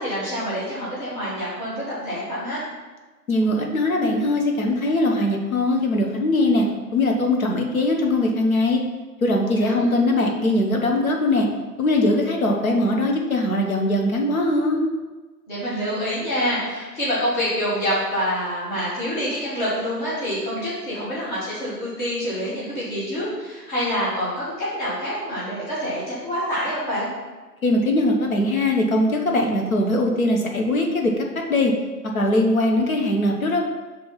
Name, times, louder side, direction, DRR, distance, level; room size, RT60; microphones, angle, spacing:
voice 1, 0.0-2.6 9.4-9.9 15.5-27.1, equal, 30° left, -9 dB, 2.2 m, -26 dB
voice 2, 3.3-6.6 6.9-8.8 9.2-11.5 11.8-14.8 27.6-31.7 32.1-33.6, left 1 dB, 55° left, 1 dB, 1.2 m, -21 dB
5.3 x 4.3 x 5.8 m, 1.2 s
figure-of-eight pair, 145°, 49 cm